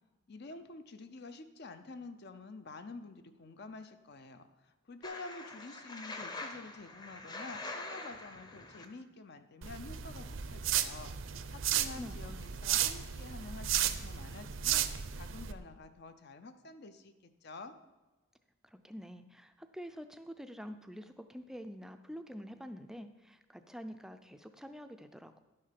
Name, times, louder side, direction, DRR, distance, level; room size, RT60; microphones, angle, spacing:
voice 1, 0.3-17.1 17.4-17.7, left 3 dB, 50° left, 9 dB, 0.6 m, -49 dB
sound 1, 5.0-8.8, left 2 dB, 20° left, 0.8 m, -44 dB
sound 2, 9.6-15.5, right 10 dB, 65° right, 0.6 m, -34 dB
voice 2, 11.7-12.5 18.6-25.4, equal, ahead, 9 dB, 0.4 m, -47 dB
11.0 x 6.5 x 5.9 m, 1.1 s
head